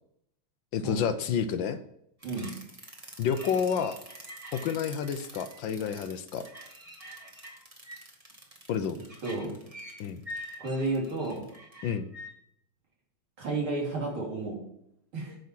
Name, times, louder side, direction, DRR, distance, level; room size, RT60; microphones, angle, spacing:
voice 1, 0.7-1.8 3.2-4.0 4.5-6.5 8.7-9.0 10.0-10.2 11.8-12.1, left 7 dB, 70° left, 10 dB, 1.3 m, -29 dB
sound 1, 2.2-12.3, equal, 20° right, 1.4 m, -46 dB
voice 2, 9.2-9.6 10.6-11.5 13.4-14.6 15.1-15.4, right 2 dB, 75° right, -3 dB, 4.2 m, -32 dB
9.4 x 6.6 x 6.0 m, 0.75 s
omnidirectional pair, 2.3 m